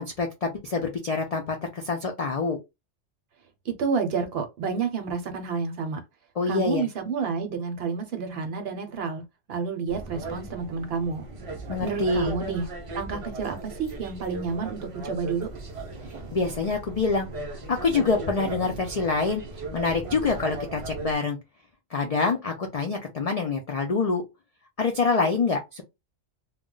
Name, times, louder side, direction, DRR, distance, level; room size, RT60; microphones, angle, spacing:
voice 1, 0.0-2.6 6.4-6.8 11.7-12.3 16.3-17.3 17.7-19.4 19.7-21.4 21.9-24.2 24.8-25.8, left 4 dB, 60° left, 0.4 m, -26 dB
voice 2, 3.6-6.0 6.5-9.2 9.5-11.2 11.8-12.7 12.9-15.5, right 5 dB, 60° right, 0.8 m, -29 dB
sound 1, 9.9-21.1, right 3 dB, 40° right, 0.5 m, -37 dB
2.3 x 2.1 x 3.7 m
omnidirectional pair, 1.2 m